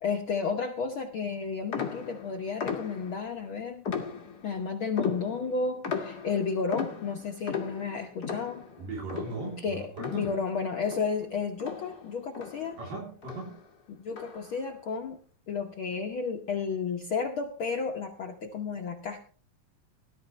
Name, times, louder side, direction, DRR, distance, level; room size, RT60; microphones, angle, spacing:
voice 1, 0.0-3.8 4.4-8.6 9.6-12.8 13.9-15.2 15.5-19.2, left 5 dB, 75° left, 3 dB, 1.2 m, -32 dB
sound 1, 1.7-3.3 3.8-4.6 5.0-10.6 10.8-12.9 13.2-13.6 14.1-14.6, left 6 dB, 35° left, 1.9 m, -37 dB
voice 2, 8.8-10.3 12.8-13.5, right 3 dB, 85° right, -1 dB, 5.0 m, -38 dB
17.5 x 12.5 x 3.2 m, 0.41 s
omnidirectional pair, 3.7 m